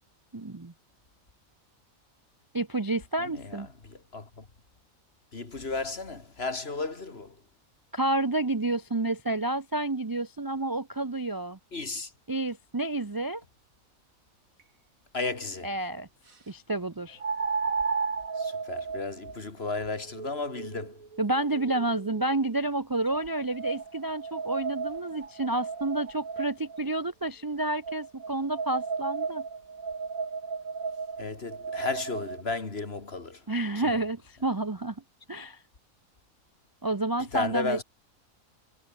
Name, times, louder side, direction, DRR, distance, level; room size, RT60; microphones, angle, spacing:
voice 1, 0.3-0.7 2.5-3.7 7.9-11.6 12.3-13.4 15.6-16.1 16.5-17.2 21.2-29.4 33.5-35.0 35.3-35.6 36.8-37.8, right 2 dB, 20° right, 0.7 m, -30 dB
voice 2, 3.2-4.5 5.3-7.4 11.7-12.1 15.1-15.7 18.4-21.0 31.2-33.4 33.8-34.0 37.2-37.8, left 3 dB, 45° left, 2.6 m, -34 dB
sound 1, 14.6-14.7 17.2-22.4 23.1-26.8 27.8-32.4, right 5 dB, 75° right, 2.6 m, -34 dB
omnidirectional pair, 1.5 m